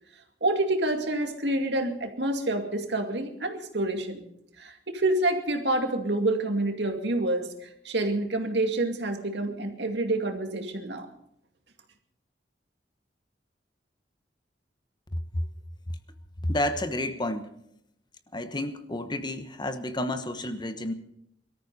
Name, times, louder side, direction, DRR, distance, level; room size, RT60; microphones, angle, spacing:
voice 1, 0.4-4.2 4.6-11.1, right 2 dB, 70° right, 5 dB, 2.3 m, -28 dB
voice 2, 15.1-15.4 15.9-16.0 16.4-17.5 18.3-20.9, left 1 dB, 25° left, 9 dB, 1.1 m, -30 dB
22.5 x 14.0 x 4.1 m, 0.75 s
head